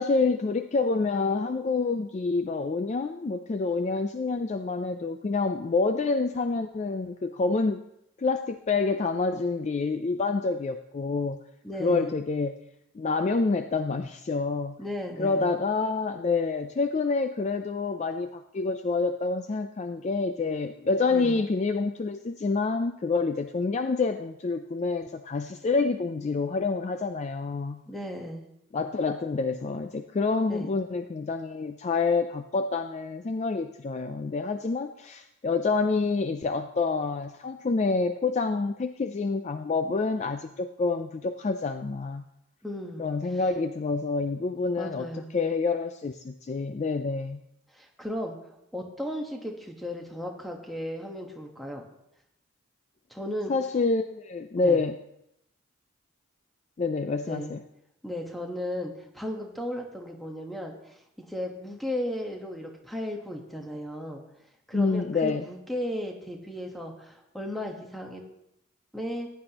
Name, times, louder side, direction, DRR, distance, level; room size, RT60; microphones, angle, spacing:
voice 1, 0.0-7.8 8.2-11.4 11.8-12.6 12.9-14.8 15.2-27.8 28.7-42.3 43.0-45.1 45.3-47.4 53.5-55.0 56.8-57.6 64.7-65.5, left 4 dB, 35° left, 8 dB, 0.3 m, -27 dB
voice 2, 11.6-12.1 14.8-15.5 21.1-21.4 27.9-28.4 30.5-30.7 42.6-43.0 44.8-45.3 47.7-48.4 48.7-51.9 53.1-53.5 54.6-54.8 57.3-57.5 58.0-64.2 64.7-68.2 68.9-69.3, equal, ahead, 1 dB, 1.2 m, -35 dB
15.0 x 9.7 x 2.9 m, 0.79 s
head